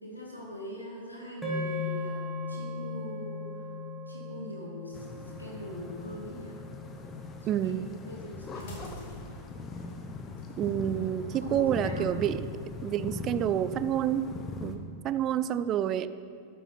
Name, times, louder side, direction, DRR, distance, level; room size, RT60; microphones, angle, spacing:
voice 1, 0.0-3.4 4.1-5.1 5.4-6.6 7.4-9.3 11.3-12.2, equal, 85° left, -3 dB, 2.3 m, -42 dB
sound 1, 1.4-9.8, left 3 dB, 5° right, 2.1 m, -39 dB
sound 2, 4.9-14.8, left 4 dB, 25° left, 0.9 m, -40 dB
voice 2, 7.5-7.9 10.6-12.5 12.8-14.2 14.6-16.1, right 11 dB, 35° right, 14 dB, 0.4 m, -28 dB
sound 3, 8.5-14.6, equal, 50° left, 2.3 m, -49 dB
12.0 x 7.0 x 5.7 m, 2.5 s
figure-of-eight pair, 90°, 0 cm